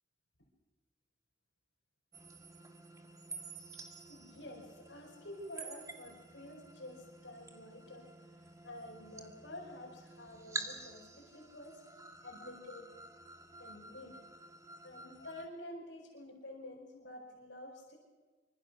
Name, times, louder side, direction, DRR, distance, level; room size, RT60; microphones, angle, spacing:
sound 1, 2.1-15.5, right 3 dB, 20° right, 2.2 m, -49 dB
voice 1, 3.7-11.9 12.2-13.0 13.6-14.2 14.8-18.0, left 1 dB, 80° left, -3 dB, 5.2 m, -50 dB
25.5 x 24.5 x 6.3 m, 1.4 s
head